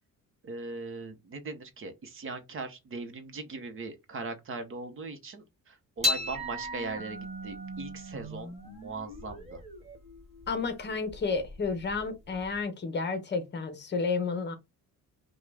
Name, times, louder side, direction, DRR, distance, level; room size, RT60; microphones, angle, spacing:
voice 1, 0.4-9.6, right 3 dB, 40° right, 0.9 m, -39 dB
sound 1, 6.0-12.6, left 2 dB, 20° right, 1.6 m, -37 dB
voice 2, 10.5-14.5, left 4 dB, 35° left, 1.0 m, -31 dB
5.8 x 2.3 x 3.3 m
cardioid pair, 150°, 32 cm